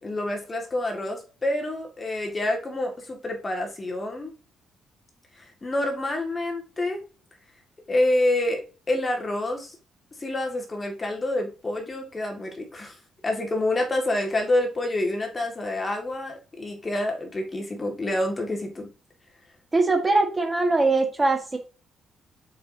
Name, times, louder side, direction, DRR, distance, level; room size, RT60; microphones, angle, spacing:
voice 1, 0.0-4.3 5.3-7.0 7.9-9.8 10.2-13.0 13.2-18.9, left 1 dB, 25° left, 2 dB, 2.0 m, -27 dB
voice 2, 19.7-21.6, right 3 dB, 20° right, 4 dB, 1.6 m, -21 dB
6.8 x 5.2 x 2.8 m, 0.35 s
cardioid pair, 90°, 0 cm